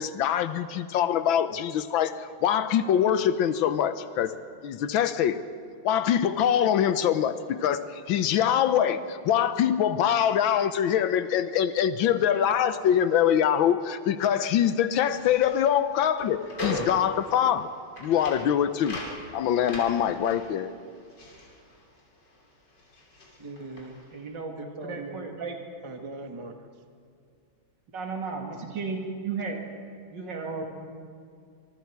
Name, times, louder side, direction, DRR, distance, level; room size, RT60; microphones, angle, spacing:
voice 1, 0.0-4.3 4.6-5.4 5.8-17.7 18.0-19.0 19.3-20.7, left 9 dB, 80° left, 12 dB, 1.5 m, -24 dB
sound 1, 15.0-22.4 22.7-24.2, left 1 dB, 60° left, 3.5 m, -39 dB
voice 2, 23.4-23.9 24.6-25.3 25.8-26.7, right 2 dB, 20° right, 5 dB, 0.8 m, -40 dB
voice 3, 24.1-24.6 24.8-25.6 27.9-29.6 30.1-30.6, right 4 dB, 60° right, 2 dB, 2.8 m, -34 dB
24.5 x 23.0 x 4.7 m, 2.3 s
omnidirectional pair, 2.2 m